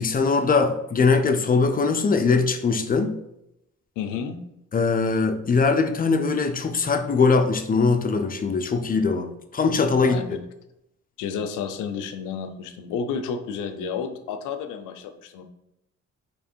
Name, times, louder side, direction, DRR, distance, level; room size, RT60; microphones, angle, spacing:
voice 1, 0.0-3.2 4.7-10.2, left 4 dB, 30° left, 7 dB, 0.5 m, -21 dB
voice 2, 4.0-4.4 10.0-10.4 11.2-15.4, left 6 dB, 90° left, 8 dB, 0.6 m, -31 dB
3.3 x 3.0 x 4.4 m, 0.84 s
cardioid pair, 90°, 30 cm